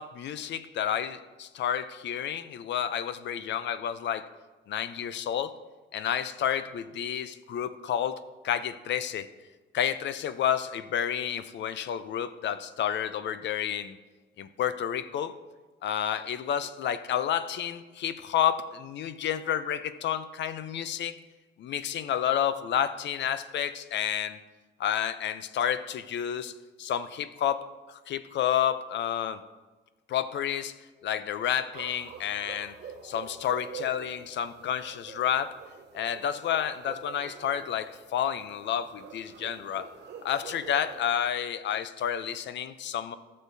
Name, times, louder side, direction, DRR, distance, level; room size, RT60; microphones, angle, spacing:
voice 1, 0.0-4.3 4.7-5.5 5.9-9.3 9.7-14.0 14.4-15.3 15.8-21.2 21.6-24.4 24.8-29.4 30.1-30.7 31.0-32.8 33.0-35.5 35.9-39.9 40.2-43.2, left 9 dB, 65° left, 13 dB, 0.5 m, -30 dB
sound 1, 31.7-41.3, right 6 dB, 60° right, 1.3 m, -46 dB
13.5 x 6.4 x 2.7 m, 1.3 s
cardioid pair, 90°, 20 cm